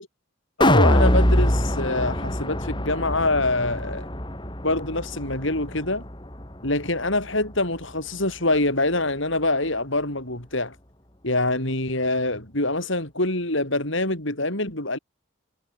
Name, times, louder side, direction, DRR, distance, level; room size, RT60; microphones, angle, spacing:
voice 1, 0.6-4.1 4.6-6.0 6.6-10.7 11.2-15.0, left 2 dB, 65° left, 6.7 m, -25 dB
sound 1, 0.6-6.8 7.2-7.3, left 1 dB, 20° left, 4.0 m, -23 dB
head